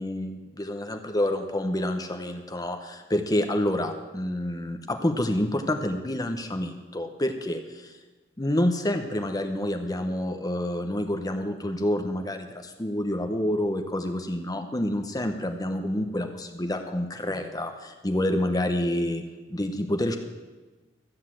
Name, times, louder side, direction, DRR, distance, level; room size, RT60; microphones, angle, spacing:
voice 1, 0.0-7.9 8.4-19.2 19.5-20.2, left 1 dB, 20° left, 6 dB, 0.8 m, -28 dB
13.5 x 8.1 x 7.6 m, 1.2 s
head